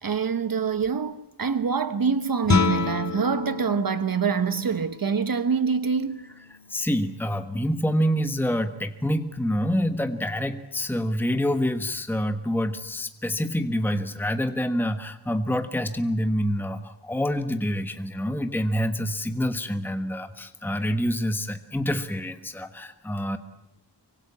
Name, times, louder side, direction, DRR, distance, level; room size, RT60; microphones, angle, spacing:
voice 1, 0.0-6.3, right 6 dB, 55° right, 1.1 m, -25 dB
Guitar, 2.4-8.0, left 5 dB, 40° left, 2.2 m, -30 dB
voice 2, 6.5-23.4, equal, 5° left, 1.3 m, -27 dB
25.0 x 24.5 x 8.6 m
wide cardioid pair, 160°, 42 cm